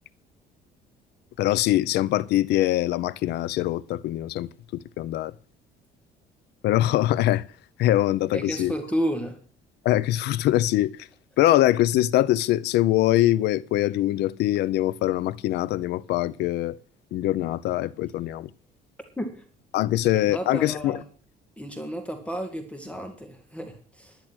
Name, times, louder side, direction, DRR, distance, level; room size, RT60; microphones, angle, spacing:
voice 1, 1.4-5.3 6.6-7.4 7.8-8.7 9.8-10.9 11.4-16.8 17.1-18.5 19.7-21.0, left 14 dB, 80° left, 0.7 m, -23 dB
voice 2, 8.3-9.4 19.2-19.4 20.3-21.0 21.6-24.2, equal, 5° left, 2.0 m, -32 dB
10.5 x 10.5 x 6.2 m
cardioid pair, 110°, 17 cm